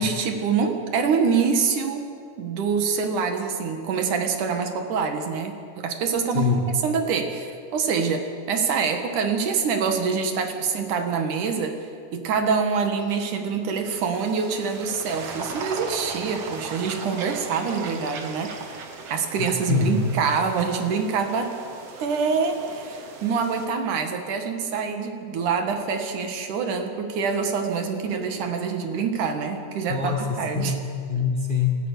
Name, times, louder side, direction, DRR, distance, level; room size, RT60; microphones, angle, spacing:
voice 1, 0.0-2.1 2.4-6.5 6.8-11.8 12.1-18.7 19.1-21.6 22.0-30.8, right 5 dB, 85° right, 5 dB, 3.2 m, -25 dB
sound 1, 13.9-23.7, right 4 dB, 55° right, 2.5 m, -38 dB
voice 2, 19.4-20.1 29.9-31.8, left 6 dB, 25° left, 2 dB, 1.1 m, -25 dB
27.5 x 13.5 x 8.3 m, 2.3 s
omnidirectional pair, 3.5 m